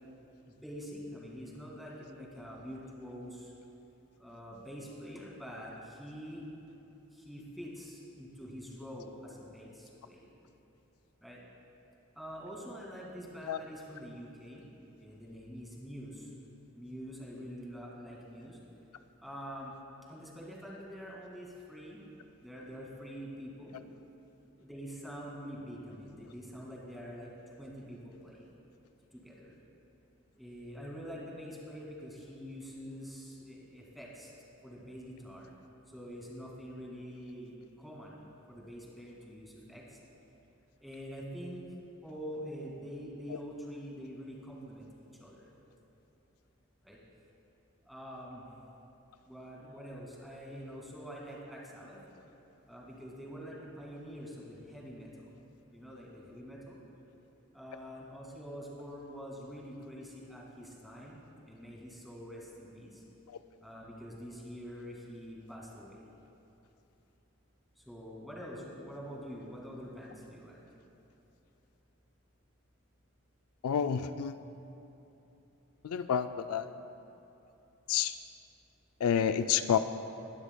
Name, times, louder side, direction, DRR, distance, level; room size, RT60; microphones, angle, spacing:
voice 1, 0.4-3.5 4.2-6.5 7.1-10.3 11.2-11.4 12.2-14.7 14.9-16.3 16.7-18.6 19.2-19.7 20.1-22.0 22.4-23.8 24.6-27.3 27.6-28.5 29.1-29.6 30.3-34.3 34.6-35.5 35.9-38.2 38.5-40.0 40.8-41.6 42.0-45.4 46.8-47.0 47.8-48.5 49.2-52.0 52.7-55.4 55.7-56.8 57.5-63.0 63.6-66.1 67.8-70.6, equal, ahead, -4 dB, 2.1 m, -45 dB
voice 2, 73.6-74.4 75.8-76.7 77.9-78.1 79.0-79.8, left 8 dB, 85° left, 10 dB, 0.4 m, -29 dB
20.5 x 12.0 x 2.2 m, 3.0 s
head